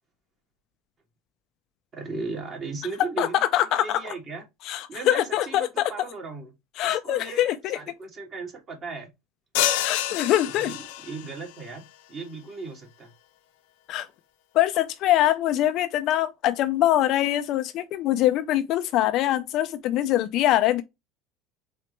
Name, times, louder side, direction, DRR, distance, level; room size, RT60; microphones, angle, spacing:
voice 1, 1.9-3.4 3.7-4.4 4.9-6.5 6.8-7.5 7.7-9.1 10.6-11.8 12.1-13.1, right 4 dB, 30° right, 2.2 m, -36 dB
voice 2, 3.2-4.0 4.6-5.9 6.8-7.8 9.8-10.7 13.9-14.1 14.5-20.8, left 13 dB, 45° left, 0.5 m, -23 dB
sound 1, 9.5-11.3, left 12 dB, 80° left, 0.8 m, -27 dB
4.4 x 4.0 x 3.0 m
cardioid pair, 155°, 0 cm